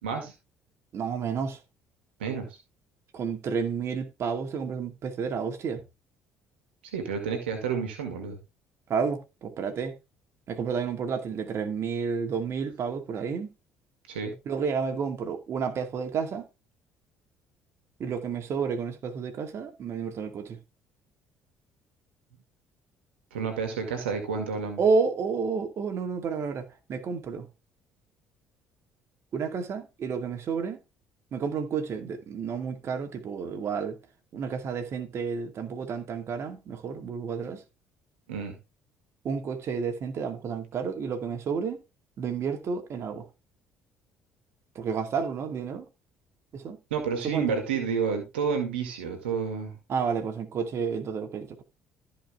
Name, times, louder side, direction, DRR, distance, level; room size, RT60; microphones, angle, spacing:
voice 1, 0.0-0.3 2.2-2.5 6.9-8.4 14.1-14.3 23.3-24.8 38.3-38.6 46.9-49.7, right 6 dB, 85° right, 2.1 m, -30 dB
voice 2, 0.9-1.6 3.1-5.8 8.9-9.9 10.5-13.5 14.5-16.5 18.0-20.6 24.8-27.5 29.3-30.8 31.3-34.0 34.3-37.6 39.2-41.8 42.2-43.3 44.7-45.9 46.5-46.8 47.2-47.5 49.9-51.6, right 5 dB, 50° right, 2.3 m, -30 dB
14.0 x 5.1 x 3.6 m
hypercardioid pair, 55°, 6 cm